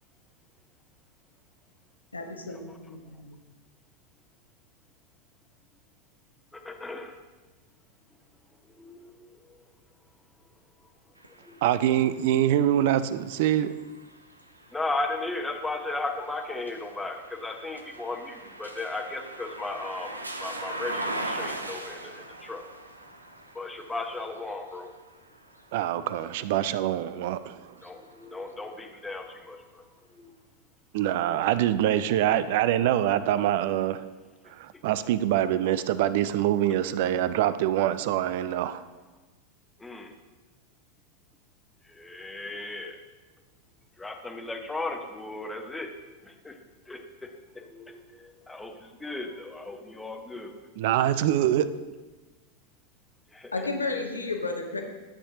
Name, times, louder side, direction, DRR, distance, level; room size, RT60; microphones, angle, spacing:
voice 1, 2.1-3.4 53.5-54.8, left 3 dB, 80° left, 3 dB, 1.0 m, -32 dB
voice 2, 6.6-7.1 8.8-9.1 14.7-22.6 23.5-24.9 27.8-29.8 30.2-30.3 39.8-40.1 41.9-43.0 44.0-45.9 46.2-46.5 46.9-47.0 47.6-48.0 48.5-50.5 53.3-53.5, left 2 dB, 10° left, 4 dB, 1.0 m, -35 dB
sound 1, 11.2-27.1 27.7-28.9, right 1 dB, 85° right, 0.7 m, -41 dB
voice 3, 11.6-13.7 25.7-27.6 30.9-34.0 34.6-38.8 50.8-51.7, right 12 dB, 50° right, 14 dB, 0.4 m, -24 dB
12.5 x 8.2 x 2.9 m, 1.2 s
figure-of-eight pair, 90°, 0 cm